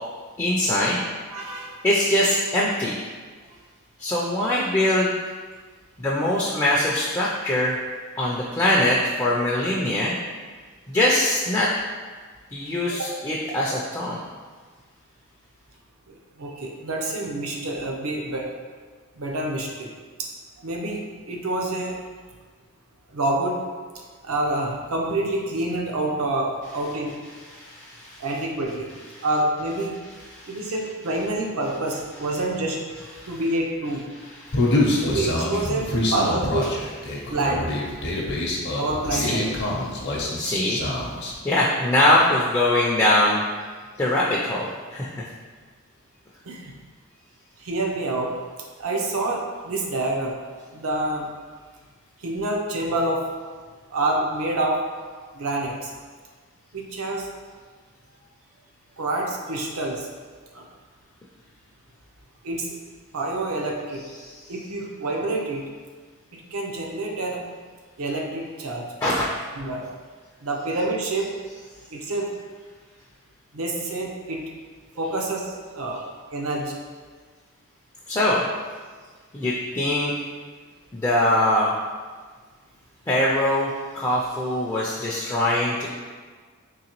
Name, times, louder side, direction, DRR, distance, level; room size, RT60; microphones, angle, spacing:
voice 1, 0.4-1.0 1.8-3.0 4.0-5.1 6.0-7.8 8.2-10.1 10.9-11.7 12.5-14.2 26.7-27.0 27.2-28.4 28.9-29.4 29.7-31.3 31.6-32.4 32.9-33.5 33.8-35.2 35.6-35.7 36.0-36.3 36.6-36.7 39.1-39.4 40.4-40.8 41.4-43.4 44.0-45.3 63.9-64.4 69.0-69.3 71.2-71.3 78.1-78.4 79.3-80.1 80.9-81.7 83.1-85.9, left 1 dB, 15° left, -5 dB, 0.4 m, -23 dB
voice 2, 1.3-1.8 13.0-13.1 16.1-18.5 19.1-19.9 20.2-20.3 20.6-22.0 23.1-23.6 24.2-27.1 28.2-28.9 29.2-29.9 30.5-34.1 35.0-35.9 36.1-36.7 37.3-37.6 38.8-39.4 46.4-46.7 47.6-48.3 48.8-50.4 50.7-51.3 52.2-53.2 53.9-54.8 55.3-55.9 56.7-57.3 59.0-60.1 60.5-60.7 62.4-62.7 63.1-64.0 64.5-65.6 66.3-67.4 68.0-68.8 69.6-69.9 70.4-71.3 71.9-72.3 73.5-74.5 75.0-76.0 76.3-76.7, right 2 dB, 75° right, 0 dB, 0.6 m, -27 dB
Human voice, 34.5-41.3, left 1 dB, 55° left, 0.6 m, -25 dB
3.9 x 3.1 x 2.9 m, 1.5 s
head